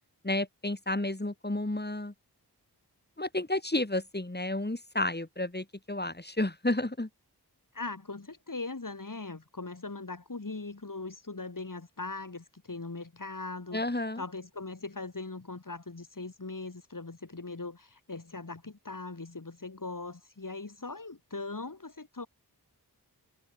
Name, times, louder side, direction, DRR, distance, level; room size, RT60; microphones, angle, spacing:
voice 1, 0.2-2.1 3.2-7.1 13.7-14.2, left 1 dB, 25° left, 5.9 m, -31 dB
voice 2, 7.7-13.8 14.1-22.3, left 3 dB, 50° left, 5.0 m, -40 dB
wide cardioid pair, 70°, 40 cm